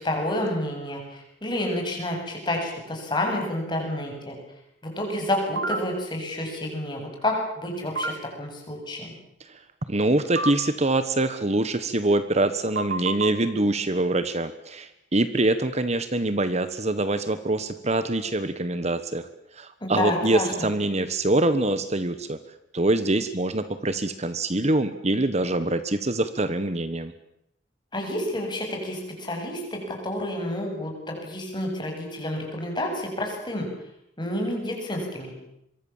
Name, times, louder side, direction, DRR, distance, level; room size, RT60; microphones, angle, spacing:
voice 1, 0.0-4.4 4.8-9.1 19.8-20.7 27.9-33.7 34.2-35.3, left 1 dB, 25° left, 1 dB, 8.0 m, -29 dB
sound 1, 5.6-5.8 8.0-8.1 10.4-10.5 12.8-13.3, right 3 dB, 60° right, 2.5 m, -27 dB
voice 2, 9.9-19.3 19.6-22.4 22.7-27.1, right 2 dB, 35° right, 11 dB, 1.3 m, -24 dB
26.5 x 23.5 x 7.4 m, 0.77 s
head